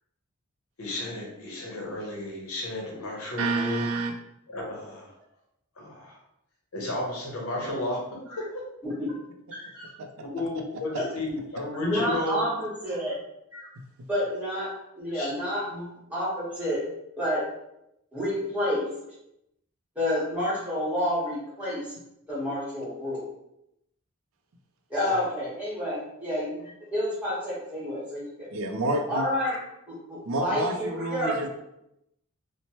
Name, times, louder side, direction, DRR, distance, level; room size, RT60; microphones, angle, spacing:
voice 1, 0.8-3.8 4.5-5.1 5.8-6.2 6.7-8.0 8.5-8.7 10.3-12.4 15.1-15.3 25.0-25.2, left 2 dB, 75° left, -1 dB, 0.8 m, -33 dB
voice 2, 3.4-4.1 10.0-10.1 28.5-29.3 30.2-31.5, right 2 dB, 70° right, 4 dB, 0.4 m, -28 dB
voice 3, 8.8-9.1 9.5-9.9 11.7-13.2 13.5-13.7 14.1-14.7 15.0-16.8 17.2-17.4 18.1-18.8 19.9-21.8 22.3-23.2 24.9-26.5 26.9-28.5 29.1-29.6 29.9-31.4, equal, 5° right, -8 dB, 1.1 m, -29 dB
3.0 x 2.1 x 2.8 m, 0.83 s
head